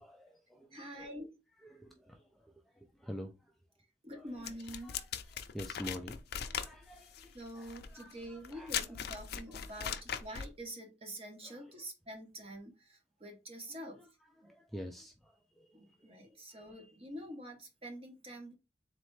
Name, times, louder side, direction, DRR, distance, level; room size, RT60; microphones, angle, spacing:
voice 1, 0.0-1.3 1.6-3.6 4.1-4.5 4.7-10.0 11.4-11.8 13.7-14.1 14.4-16.9, equal, ahead, 0.4 m, -50 dB
voice 2, 0.7-1.4 4.0-5.0 7.3-14.1 14.4-14.5 15.7-18.6, equal, 35° right, 1.1 m, -46 dB
sound 1, 4.4-10.6, left 8 dB, 60° left, 0.4 m, -40 dB
4.0 x 3.2 x 3.2 m
head